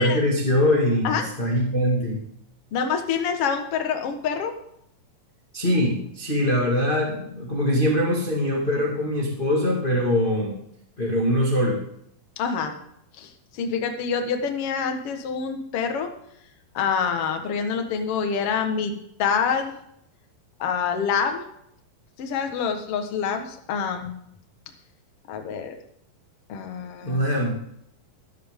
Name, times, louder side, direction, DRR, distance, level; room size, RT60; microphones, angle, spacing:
voice 1, 0.0-2.2 5.5-10.5 11.0-11.8 27.0-27.6, left 1 dB, 20° left, -3 dB, 1.5 m, -22 dB
voice 2, 2.7-4.5 12.4-12.7 13.2-16.1 16.7-18.9 19.2-19.7 20.6-21.5 22.2-24.1 25.3-25.7 26.5-27.2, left 6 dB, 55° left, 5 dB, 1.8 m, -26 dB
14.0 x 12.5 x 3.6 m, 0.72 s
omnidirectional pair, 4.2 m